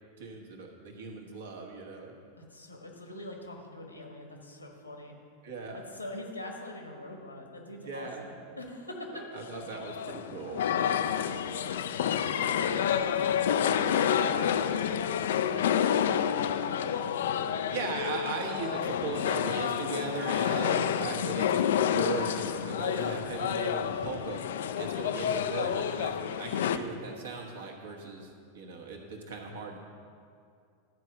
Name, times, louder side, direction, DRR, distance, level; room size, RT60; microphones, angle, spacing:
voice 1, 0.2-2.2 5.4-5.8 7.8-8.3 9.1-10.7 17.7-24.4 24.8-29.8, right 4 dB, 60° right, 1 dB, 1.4 m, -38 dB
voice 2, 2.4-5.2 5.7-9.3 10.7-16.2 16.5-18.0, left 1 dB, 85° left, 2 dB, 1.4 m, -43 dB
sound 1, 9.5-26.8, left 9 dB, 60° left, 0.3 m, -29 dB
12.0 x 4.7 x 6.5 m, 2.3 s
figure-of-eight pair, 90°, 0 cm